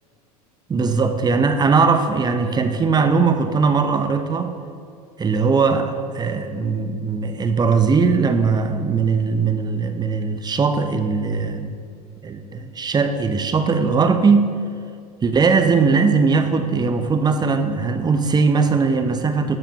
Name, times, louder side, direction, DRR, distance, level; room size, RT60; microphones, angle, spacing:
voice 1, 0.7-4.5 5.2-11.8 12.2-14.6 15.2-19.6, right 4 dB, 20° right, 8 dB, 0.7 m, -19 dB
14.0 x 6.9 x 3.0 m, 2.3 s
hypercardioid pair, 90°, 20 cm